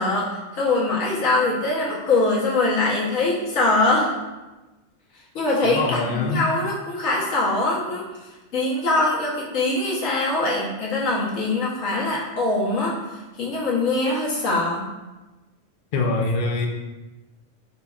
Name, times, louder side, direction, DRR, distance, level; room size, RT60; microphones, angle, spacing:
voice 1, 0.0-4.1 5.3-8.0 8.5-13.0 13.4-14.9, left 2 dB, 75° left, -4 dB, 1.4 m, -22 dB
voice 2, 5.6-6.5 15.9-16.7, left 3 dB, 60° left, 1 dB, 0.6 m, -24 dB
4.2 x 3.9 x 2.4 m, 1.1 s
omnidirectional pair, 1.3 m